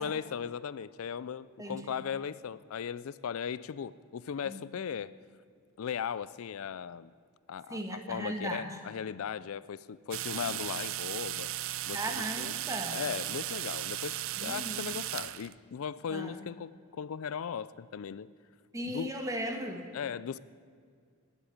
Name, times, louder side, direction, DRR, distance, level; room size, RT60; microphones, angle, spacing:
voice 1, 0.0-5.1 5.8-7.1 7.5-11.5 11.9-12.6 12.9-18.3 18.9-19.1 19.9-20.4, left 7 dB, 70° left, 18 dB, 0.4 m, -37 dB
voice 2, 1.6-1.9 4.4-4.6 7.7-8.8 11.9-13.0 14.4-14.8 16.1-16.4 18.7-19.9, right 1 dB, 15° right, 4 dB, 1.5 m, -37 dB
sound 1, 10.1-15.5, right 13 dB, 65° right, 0.5 m, -36 dB
20.0 x 8.1 x 8.7 m, 2.1 s
head